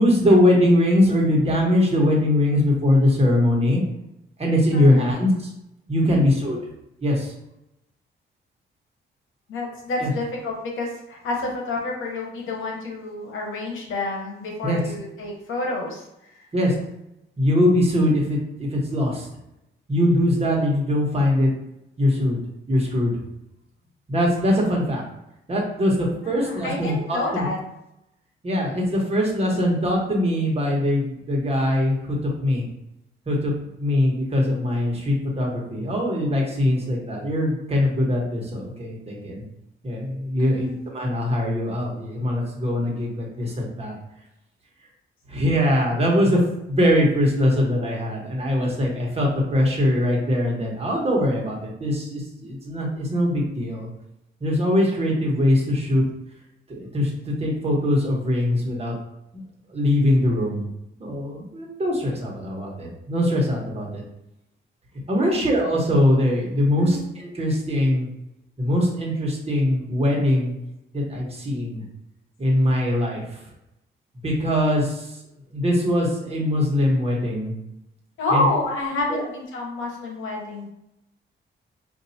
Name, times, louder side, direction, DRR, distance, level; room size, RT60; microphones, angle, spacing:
voice 1, 0.0-3.8 4.4-5.5 5.9-6.6 7.0-7.3 10.0-10.1 14.6-14.8 16.5-16.7 17.4-19.3 19.9-21.5 22.0-22.4 22.7-23.1 24.1-25.0 25.5-27.4 28.4-32.2 32.4-32.6 33.3-33.5 33.8-39.4 39.8-43.9 45.3-46.4 46.7-53.9 54.4-56.0 56.7-58.9 59.7-60.7 61.0-64.0 65.1-68.1 68.6-70.6 70.9-71.8 72.4-73.2 74.2-75.0 75.5-77.5 78.3-78.4 79.1-79.2, left 1 dB, 30° right, -2 dB, 1.2 m, -22 dB
voice 2, 4.7-5.1 6.0-6.3 9.5-16.0 16.4-16.5 26.2-27.6 40.4-40.8 65.2-65.5 66.8-67.1 78.2-80.7, left 2 dB, 80° left, 0 dB, 1.0 m, -29 dB
5.3 x 2.6 x 2.8 m, 0.85 s
cardioid pair, 110°, 20 cm